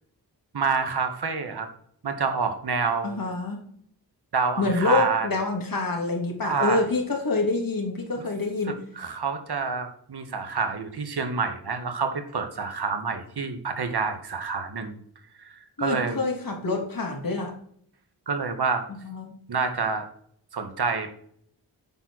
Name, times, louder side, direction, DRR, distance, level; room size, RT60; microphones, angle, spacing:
voice 1, 0.5-1.7 2.0-3.2 4.3-5.3 6.4-6.8 8.2-8.3 8.7-15.0 15.4-16.2 18.3-18.8 19.5-20.1 20.5-21.1, right 5 dB, 60° right, 7 dB, 1.5 m, -28 dB
voice 2, 3.0-3.6 4.6-8.8 15.8-17.5 19.0-19.3, left 3 dB, 50° left, 2 dB, 2.5 m, -26 dB
9.1 x 4.5 x 6.1 m, 0.63 s
wide cardioid pair, 85°, 43 cm